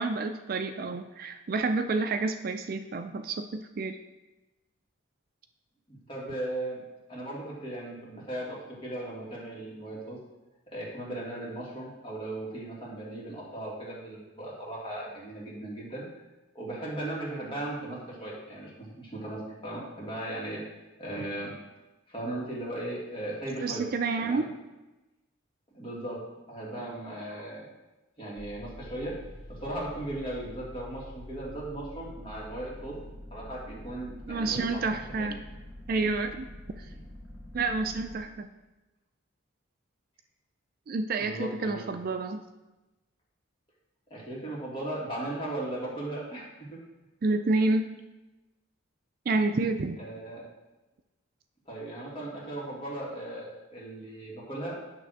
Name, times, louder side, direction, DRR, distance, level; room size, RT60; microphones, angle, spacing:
voice 1, 0.0-4.0 23.6-24.5 34.3-35.4 35.9-36.5 36.8-36.9 37.5-38.5 40.9-42.4 47.2-47.9 49.3-50.0, right 3 dB, 50° right, 7 dB, 0.4 m, -29 dB
voice 2, 5.9-6.8 7.1-10.2 10.7-16.0 16.5-20.6 21.0-21.5 22.1-23.9 24.2-24.5 25.7-27.6 28.2-29.2 29.5-33.0 33.3-34.9 35.2-35.4 41.2-41.9 44.1-46.8 50.0-50.4 51.7-54.8, right 1 dB, 25° left, -5 dB, 2.0 m, -37 dB
sound 1, 28.4-38.2, left 1 dB, ahead, 1.9 m, -46 dB
9.0 x 3.3 x 6.2 m, 1.1 s
head